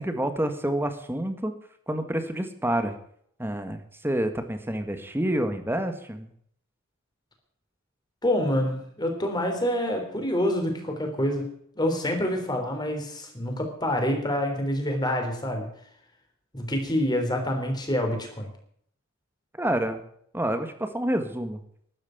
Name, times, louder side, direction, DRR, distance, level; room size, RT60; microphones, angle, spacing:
voice 1, 0.0-1.5 1.9-2.9 3.4-6.3 19.6-20.0 20.3-21.6, right 1 dB, 10° right, 8 dB, 1.6 m, -28 dB
voice 2, 8.2-15.7 16.5-18.5, left 1 dB, 20° left, 4 dB, 3.5 m, -27 dB
12.5 x 9.6 x 9.2 m, 0.65 s
head